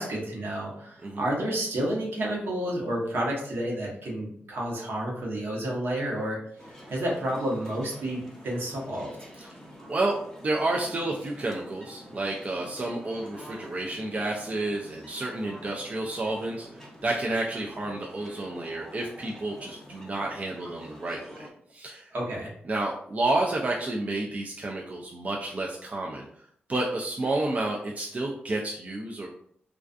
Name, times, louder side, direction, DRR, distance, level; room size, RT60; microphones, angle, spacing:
voice 1, 0.0-6.4 6.9-9.1 22.1-22.5, right 1 dB, 70° right, -2 dB, 0.9 m, -30 dB
sound 1, 6.6-21.5, equal, 10° left, 0.7 m, -47 dB
voice 2, 10.4-22.1 22.7-26.3 26.7-29.3, right 2 dB, 35° right, -1 dB, 0.4 m, -30 dB
2.3 x 2.3 x 2.4 m, 0.64 s
cardioid pair, 70°, 4 cm